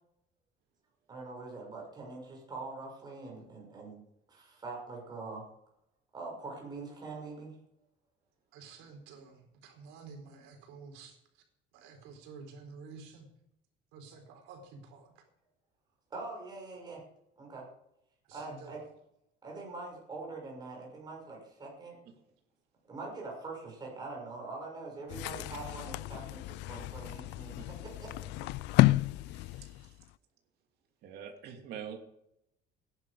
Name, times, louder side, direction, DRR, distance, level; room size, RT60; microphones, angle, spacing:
voice 1, 1.1-4.0 4.3-5.4 6.1-7.6 16.1-17.0 17.4-17.6 18.3-18.8 19.4-22.0 22.9-27.6 28.0-28.1 28.4-28.5, right 3 dB, 20° right, -1 dB, 6.1 m, -43 dB
voice 2, 8.5-11.4 11.7-13.3 13.9-15.2 18.2-18.7, right 4 dB, 90° right, 3 dB, 4.5 m, -51 dB
sound 1, 25.1-30.1, left 19 dB, 65° left, 0.5 m, -31 dB
voice 3, 29.2-30.0 31.0-32.0, right 8 dB, 55° right, 3 dB, 2.9 m, -45 dB
16.5 x 11.5 x 5.0 m, 0.79 s
cardioid pair, 160°, 19 cm